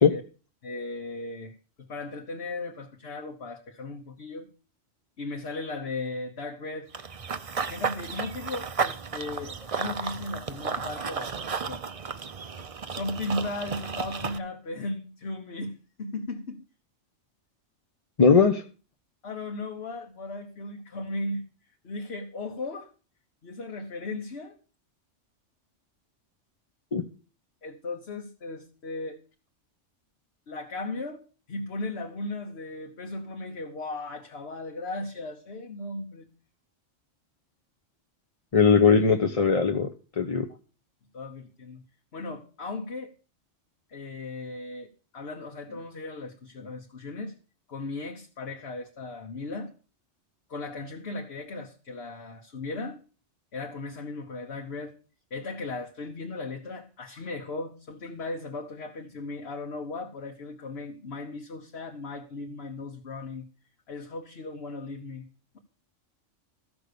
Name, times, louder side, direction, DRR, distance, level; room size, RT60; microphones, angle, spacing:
voice 1, 0.6-4.5 5.2-6.9 7.7-11.8 12.6-16.6 19.2-21.4 21.8-22.9 23.4-24.5 27.6-29.2 30.5-31.2 31.5-36.3 41.1-41.8 42.1-43.1 43.9-47.3 47.7-49.7 50.5-53.0 53.5-54.9 55.3-63.5 63.9-65.3, left 2 dB, 55° left, 1.4 m, -36 dB
Run / Bird vocalization bird call bird song, 6.9-14.4, right 5 dB, 40° right, 0.6 m, -33 dB
voice 2, 18.2-18.6 26.9-27.0 38.5-39.9 40.2-40.4, left 5 dB, 30° left, 0.8 m, -19 dB
14.5 x 6.0 x 6.7 m
omnidirectional pair, 1.3 m